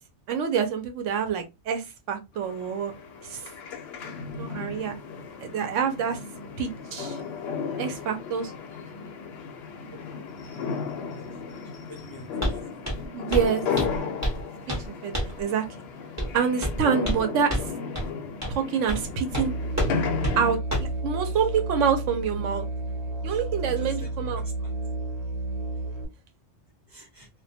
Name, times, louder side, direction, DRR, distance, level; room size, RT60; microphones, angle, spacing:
voice 1, 0.3-2.9 3.2-3.5 4.2-5.0 5.4-6.2 6.6-7.2 7.8-8.5 10.1-10.3 13.1-13.6 14.7-15.7 16.3-17.6 18.5-19.5 20.4-22.6 23.2-24.4, right 7 dB, 85° right, 1.0 m, -27 dB
sound 1, 2.4-20.6, left 5 dB, 65° left, 0.7 m, -34 dB
voice 2, 11.7-12.9 23.3-24.7 26.9-27.3, right 1 dB, 25° left, 0.5 m, -47 dB
Walk footsteps, 12.4-12.6 12.8-13.1 13.3-13.5 13.8-14.4 14.7-14.9 15.1-15.4 16.2-16.3 16.6-17.2 17.5-17.7 17.9-18.1 18.4-18.6 18.9-19.0 19.3-19.5 19.8-19.9 20.2-20.4 20.7-20.9, equal, 15° right, 0.9 m, -28 dB
Musical instrument, 19.3-26.1, right 2 dB, 65° right, 1.2 m, -31 dB
2.2 x 2.2 x 2.6 m
omnidirectional pair, 1.3 m